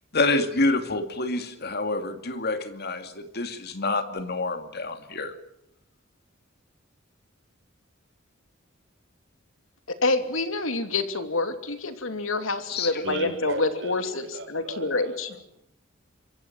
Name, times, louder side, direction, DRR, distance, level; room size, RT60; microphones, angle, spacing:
voice 1, 0.1-5.3 12.7-12.9, left 2 dB, 55° left, 8 dB, 2.5 m, -27 dB
voice 2, 10.0-15.3, left 3 dB, 85° left, 8 dB, 2.9 m, -27 dB
voice 3, 13.0-15.5, right 2 dB, 65° right, 5 dB, 6.6 m, -36 dB
26.5 x 23.0 x 7.5 m, 0.78 s
head